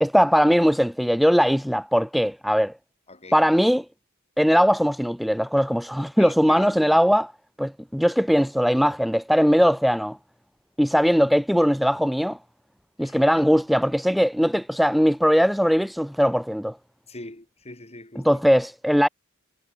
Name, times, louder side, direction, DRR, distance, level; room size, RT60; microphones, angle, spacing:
voice 1, 0.0-2.7 3.3-3.9 4.4-7.3 7.6-10.2 10.8-12.4 13.0-16.8 18.2-19.1, equal, ahead, 0.4 m, -20 dB
voice 2, 3.1-3.7 6.2-7.0 13.0-13.6 17.1-18.3, left 2 dB, 30° left, 5.8 m, -42 dB
head